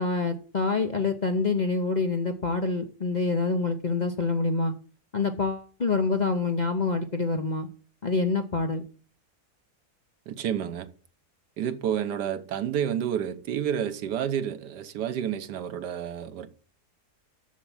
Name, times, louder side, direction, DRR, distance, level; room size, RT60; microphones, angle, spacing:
voice 1, 0.0-4.7 5.1-7.7 8.0-8.8, left 3 dB, 40° left, 0.6 m, -26 dB
voice 2, 10.3-10.9 11.6-16.5, right 9 dB, 85° right, 1.5 m, -30 dB
7.4 x 7.1 x 7.2 m
omnidirectional pair, 1.7 m